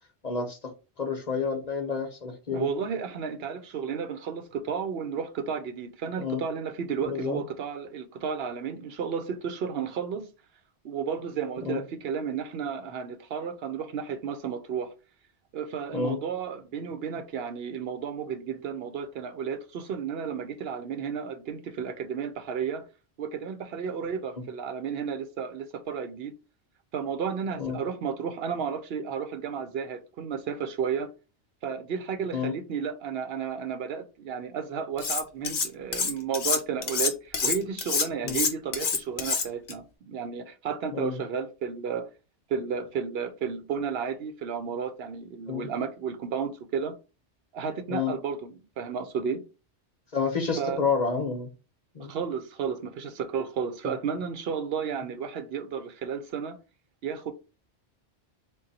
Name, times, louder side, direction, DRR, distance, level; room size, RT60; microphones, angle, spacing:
voice 1, 0.2-0.7 1.0-2.7 6.2-6.4 7.0-7.4 11.6-11.8 15.9-16.2 27.6-27.8 32.3-32.5 38.2-38.4 40.9-41.2 45.5-45.7 47.9-48.1 50.1-51.5 51.9-52.1 53.8-53.9, left 5 dB, 40° left, 0.8 m, -29 dB
voice 2, 2.5-10.2 10.8-14.9 15.5-22.8 23.2-26.3 26.9-31.1 31.6-42.1 42.5-47.0 47.5-49.4 50.6-50.8 52.0-56.6 57.0-57.3, right 6 dB, 65° right, 0.8 m, -32 dB
Cutlery silverware, 35.0-35.7 35.9-39.7, left 5 dB, 65° left, 1.0 m, -27 dB
3.8 x 2.2 x 4.0 m
omnidirectional pair, 1.1 m